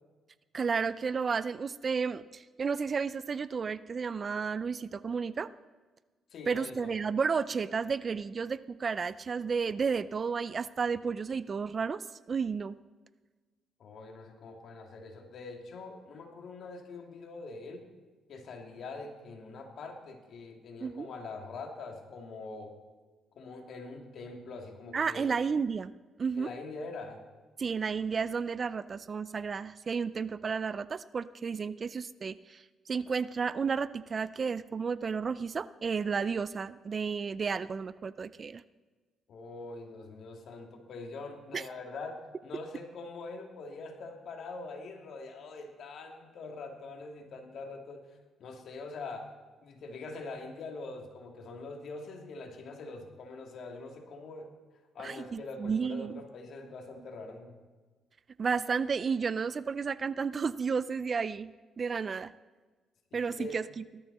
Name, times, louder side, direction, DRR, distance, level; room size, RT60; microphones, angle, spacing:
voice 1, 0.5-5.5 6.5-12.8 20.8-21.1 24.9-25.9 26.2-26.5 27.6-38.6 41.5-41.6 55.0-56.2 58.4-61.5 61.8-62.3 63.1-63.8, right 5 dB, 40° right, 17 dB, 0.5 m, -32 dB
voice 2, 6.3-7.0 13.8-17.9 18.3-22.7 23.3-25.3 26.4-27.2 39.3-49.3 49.6-54.5 54.9-57.5 63.1-63.6, left 3 dB, 65° left, 3 dB, 2.6 m, -44 dB
18.5 x 13.0 x 4.2 m, 1.3 s
cardioid pair, 90°, 0 cm